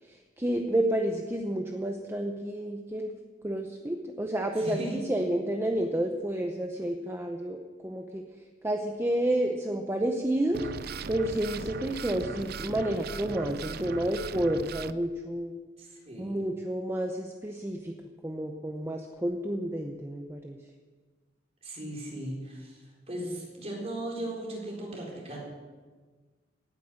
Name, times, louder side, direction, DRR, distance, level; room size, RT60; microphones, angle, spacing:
voice 1, 0.0-3.1 3.4-8.2 8.6-15.6 16.2-17.9 18.2-20.6, right 1 dB, 15° right, 4 dB, 0.8 m, -30 dB
voice 2, 4.6-5.0 15.8-16.4 21.6-25.4, right 1 dB, 35° right, -2 dB, 4.2 m, -37 dB
sound 1, 10.5-14.9, right 5 dB, 55° right, 0.5 m, -38 dB
17.5 x 9.5 x 6.5 m, 1.4 s
head